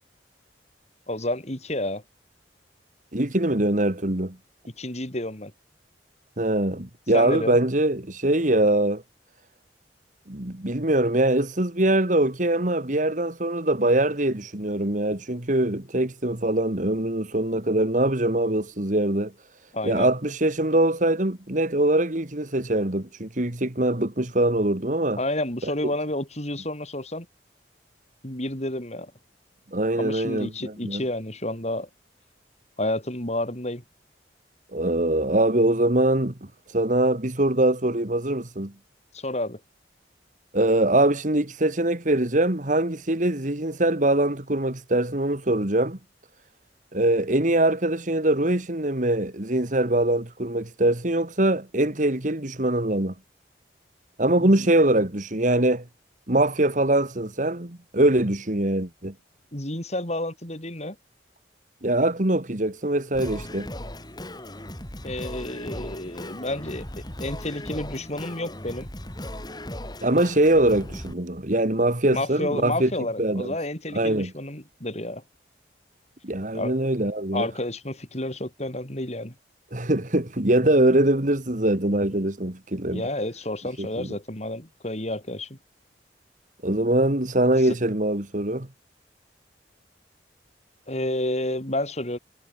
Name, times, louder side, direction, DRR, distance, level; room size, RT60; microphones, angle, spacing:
voice 1, 1.1-2.0 4.8-5.5 7.1-7.6 19.7-20.1 25.2-27.3 28.2-29.1 30.0-31.9 32.8-33.8 39.1-39.6 54.4-54.7 59.5-61.0 65.0-66.9 67.2-68.9 72.1-75.2 76.5-76.7 77.3-79.3 82.9-85.6 87.6-87.8 90.9-92.2, left 1 dB, 40° left, 5.8 m, -30 dB
voice 2, 3.1-4.4 6.4-9.0 10.3-19.3 19.8-25.2 25.6-25.7 29.7-31.0 34.7-36.3 36.7-38.7 40.5-46.0 46.9-53.1 54.2-55.8 56.3-59.1 61.8-63.7 70.0-72.9 73.2-73.5 73.9-74.3 76.2-77.5 79.7-83.0 83.8-84.1 86.6-88.7, right 1 dB, 45° right, 2.2 m, -23 dB
Singing, 63.1-71.1, left 1 dB, 25° left, 6.6 m, -37 dB
head